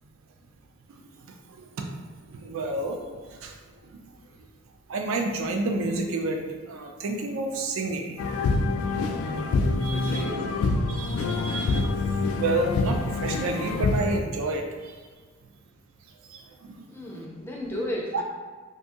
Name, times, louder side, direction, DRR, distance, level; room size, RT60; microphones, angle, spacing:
voice 1, 2.3-3.0 3.4-3.5 3.9-4.0 4.9-8.2 9.7-10.3 10.9-11.8 12.4-14.9 16.3-16.7, right 2 dB, 75° right, 2 dB, 0.4 m, -30 dB
sound 1, 8.2-14.2, left 3 dB, 85° left, 0.3 m, -26 dB
voice 2, 9.9-10.6 16.8-18.2, left 1 dB, 10° left, -2 dB, 0.5 m, -34 dB
2.7 x 2.6 x 3.5 m, 1.4 s
head